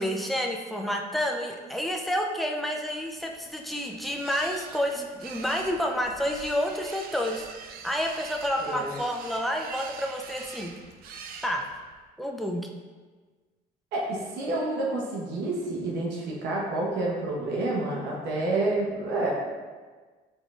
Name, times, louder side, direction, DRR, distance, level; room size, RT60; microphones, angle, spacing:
voice 1, 0.0-10.7 11.4-11.7 12.2-12.7, equal, ahead, 1 dB, 0.5 m, -29 dB
sound 1, 3.1-12.0, right 6 dB, 60° right, 0.5 m, -44 dB
voice 2, 8.6-8.9 13.9-19.3, right 2 dB, 80° right, -3 dB, 1.0 m, -29 dB
5.3 x 3.8 x 2.4 m, 1.4 s
cardioid pair, 110°, 17 cm